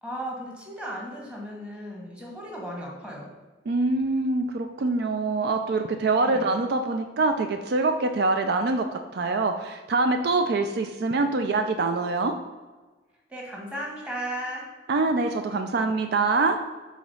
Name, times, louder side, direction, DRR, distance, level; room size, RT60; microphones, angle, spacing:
voice 1, 0.0-3.3 6.2-6.6 13.3-14.7, right 1 dB, 5° right, -2 dB, 1.4 m, -35 dB
voice 2, 3.7-12.4 14.9-16.6, right 3 dB, 60° right, 6 dB, 0.4 m, -24 dB
4.9 x 3.9 x 5.3 m, 1.3 s
head